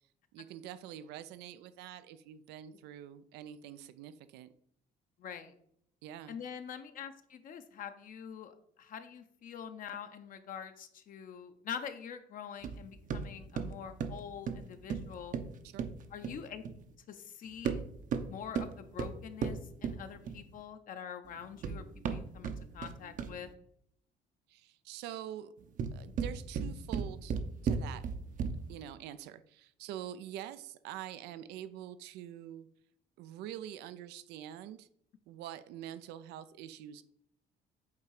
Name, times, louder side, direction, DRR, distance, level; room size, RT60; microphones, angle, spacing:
voice 1, 0.3-4.5 6.0-6.4 15.6-15.9 24.5-25.5 25.9-27.3 27.6-28.1 28.7-32.7 33.2-34.9 35.3-37.0, right 11 dB, 90° right, 13 dB, 0.5 m, -45 dB
voice 2, 5.2-5.5 6.3-15.3 16.1-16.6 17.1-17.9 18.3-23.5, left 8 dB, 55° left, 8 dB, 0.7 m, -45 dB
sound 1, 12.6-16.8 17.5-20.6 21.3-23.5 25.6-28.8, right 6 dB, 50° right, 0.7 m, -37 dB
8.3 x 2.9 x 4.7 m, 0.68 s
cardioid pair, 110°, 17 cm